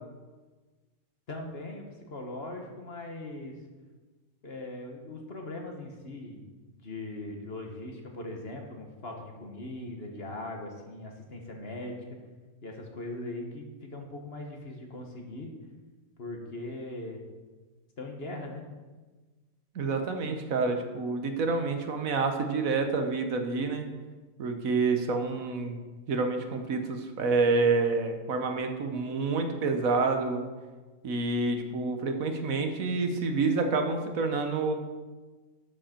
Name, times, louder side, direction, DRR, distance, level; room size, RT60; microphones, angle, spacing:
voice 1, 1.3-3.5 4.4-6.4 6.7-12.0 12.6-15.5 16.2-17.2 18.0-18.6, left 2 dB, 45° left, 2 dB, 1.6 m, -40 dB
voice 2, 19.7-23.8 24.4-25.8 26.1-30.4 31.0-34.7, right 3 dB, 70° right, 5 dB, 1.4 m, -28 dB
12.5 x 7.6 x 4.4 m, 1.3 s
omnidirectional pair, 1.5 m